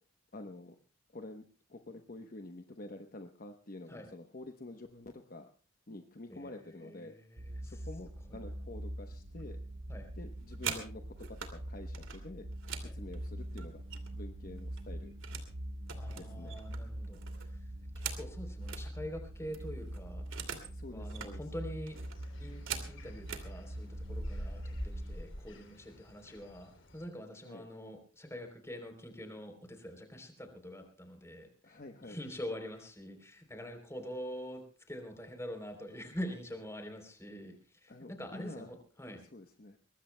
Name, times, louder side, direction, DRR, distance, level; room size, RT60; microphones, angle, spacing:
voice 1, 0.3-0.8 1.1-1.4 1.7-5.5 5.9-7.1 7.6-9.6 10.1-12.5 12.8-13.8 14.1-15.1 16.1-16.6 20.7-21.4 27.4-27.7 31.6-32.2 37.9-38.7 39.3-39.8, left 2 dB, 45° left, 5 dB, 0.9 m, -48 dB
voice 2, 6.3-7.8 8.3-8.4 9.9-10.1 12.8-13.0 15.9-17.2 18.0-20.2 20.9-22.0 22.4-31.8 32.0-39.2, equal, 15° left, 5 dB, 3.4 m, -45 dB
sound 1, 7.4-25.2, right 1 dB, 50° right, 0.9 m, -43 dB
sound 2, 10.3-11.5 11.9-14.3 14.6-15.5 15.8-18.9 19.2-19.3 19.5-20.7 21.0-21.3 21.9-23.5 24.3-24.5 24.8-25.2 25.5-26.0, right 8 dB, 80° right, 2.4 m, -43 dB
sound 3, 21.9-27.1, equal, 70° left, 3.0 m, -47 dB
23.5 x 20.0 x 2.2 m, 0.36 s
head